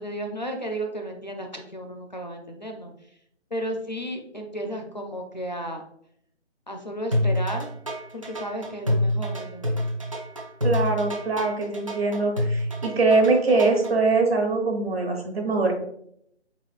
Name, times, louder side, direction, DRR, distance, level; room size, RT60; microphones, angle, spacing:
voice 1, 0.0-2.9 3.5-5.8 6.7-7.7 8.1-9.8, equal, 40° left, 3 dB, 0.4 m, -33 dB
sound 1, 7.1-13.9, left 1 dB, 30° right, 0.5 m, -26 dB
voice 2, 10.6-15.7, right 3 dB, 60° right, 3 dB, 1.1 m, -22 dB
4.1 x 3.7 x 2.3 m, 0.71 s
figure-of-eight pair, 165°, 34 cm